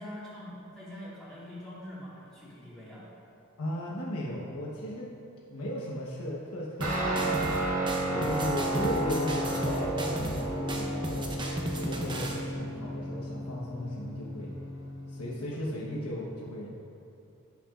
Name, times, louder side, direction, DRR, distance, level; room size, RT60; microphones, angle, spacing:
voice 1, 0.0-3.0, left 1 dB, 5° left, -11 dB, 1.9 m, -44 dB
voice 2, 3.6-5.1 5.5-7.6 8.1-11.2 11.7-14.5 15.1-16.8, equal, 90° left, -5 dB, 1.1 m, -36 dB
sound 1, 6.8-7.6 7.9-10.4 10.7-12.4, right 1 dB, 20° right, 0.8 m, -35 dB
Guitar, 6.8-15.6, right 1 dB, 70° right, 1.9 m, -32 dB
16.5 x 6.0 x 2.5 m, 2.9 s
head